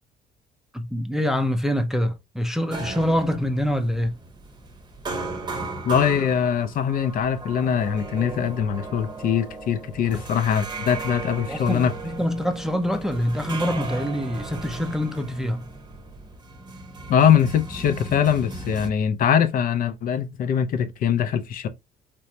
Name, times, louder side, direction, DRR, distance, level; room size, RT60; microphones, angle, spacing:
voice 1, 0.7-4.1 11.5-15.6, equal, 5° right, 0.5 m, -25 dB
sound 1, 2.7-18.9, right 3 dB, 25° right, 0.8 m, -36 dB
voice 2, 5.9-11.9 17.1-21.7, left 8 dB, 55° left, 0.6 m, -22 dB
3.3 x 3.0 x 2.7 m
cardioid pair, 110°, 17 cm